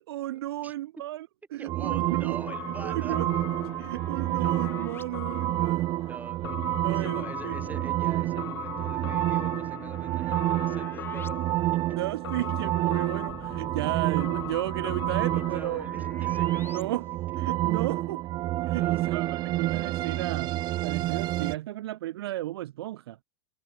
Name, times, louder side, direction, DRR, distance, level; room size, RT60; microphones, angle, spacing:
voice 1, 0.0-2.4 2.8-3.3 3.8-5.9 6.8-7.6 12.0-15.8 16.7-17.1 17.4-18.2 18.6-23.2, right 15 dB, 55° right, 0.9 m, -34 dB
voice 2, 0.6-1.0 1.6-3.2 4.4-4.5 6.1-12.0 15.3-16.8 17.3-17.4 18.8-19.4, right 3 dB, 10° right, 4.0 m, -46 dB
sound 1, 1.7-21.6, right 16 dB, 30° right, 0.5 m, -29 dB
sound 2, 1.9-5.0 6.4-11.3 11.6-11.7 13.3-16.8, left 5 dB, 15° left, 1.2 m, -46 dB
sound 3, 2.5-15.7, left 14 dB, 60° left, 1.8 m, -42 dB
figure-of-eight pair, 95°, 15 cm